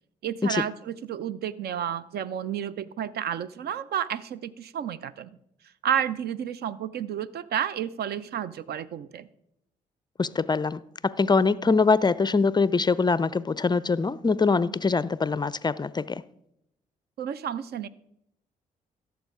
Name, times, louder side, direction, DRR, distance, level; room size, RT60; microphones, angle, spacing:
voice 1, 0.2-5.4 5.8-9.3 17.2-17.9, right 9 dB, 55° right, 0.6 m, -31 dB
voice 2, 10.2-16.2, left 4 dB, 20° left, 0.4 m, -23 dB
16.5 x 7.2 x 3.6 m
hypercardioid pair, 45°, 19 cm